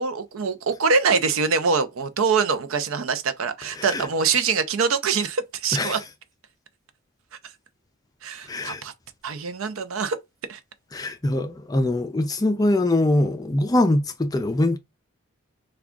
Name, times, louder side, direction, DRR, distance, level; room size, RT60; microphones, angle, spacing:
voice 1, 0.0-6.0 8.2-8.9 9.2-10.2 10.5-10.6, right 5 dB, 80° right, 0.5 m, -24 dB
voice 2, 8.5-8.8 10.9-14.8, left 1 dB, 20° left, 0.4 m, -23 dB
3.5 x 2.3 x 3.6 m
head